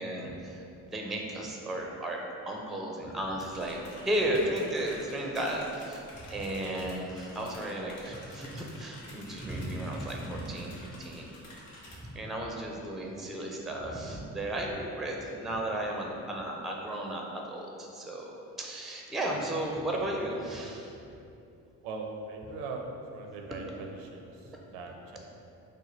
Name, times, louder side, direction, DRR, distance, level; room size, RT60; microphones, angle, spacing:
voice 1, 0.0-3.8 4.0-11.3 11.7-20.9 23.6-23.7, right 1 dB, ahead, 0 dB, 0.4 m, -34 dB
sound 1, 3.4-12.0, left 1 dB, 75° left, 0.9 m, -50 dB
voice 2, 21.8-22.8 23.1-23.9 24.1-24.3 24.7-25.2, right 4 dB, 80° right, 2 dB, 0.5 m, -39 dB
3.2 x 2.1 x 4.0 m, 2.7 s
hypercardioid pair, 45°, 47 cm